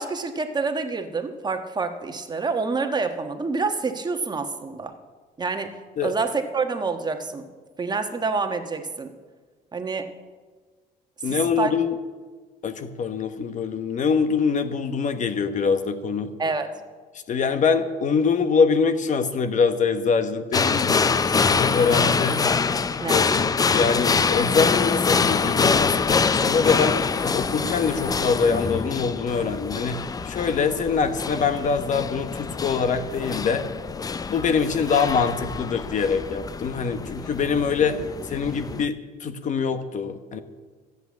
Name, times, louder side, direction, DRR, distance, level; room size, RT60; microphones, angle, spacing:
voice 1, 0.0-4.9 5.4-5.8 6.0-7.5 7.8-9.1 9.7-10.1 11.2-11.7 16.4-16.8 23.0-23.2, right 4 dB, 25° right, 6 dB, 1.3 m, -27 dB
voice 2, 11.2-12.0 12.6-16.3 17.3-22.4 23.1-27.0 27.2-33.7 34.3-40.4, left 5 dB, 45° left, 10 dB, 1.1 m, -24 dB
sound 1, 20.5-38.9, left 5 dB, 20° left, 0.5 m, -25 dB
14.0 x 8.1 x 8.4 m, 1.4 s
cardioid pair, 110°, 17 cm